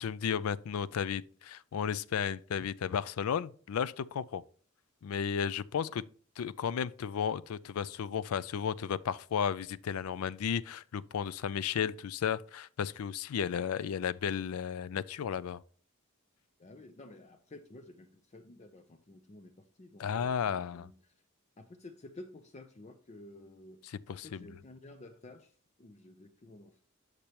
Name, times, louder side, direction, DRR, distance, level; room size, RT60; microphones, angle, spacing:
voice 1, 0.0-4.4 5.0-6.0 6.4-15.6 20.0-20.9 24.1-24.6, left 7 dB, 85° left, 0.4 m, -34 dB
voice 2, 16.6-21.2 21.6-23.8 24.1-26.8, left 2 dB, 30° left, 0.6 m, -52 dB
8.5 x 6.6 x 2.9 m
head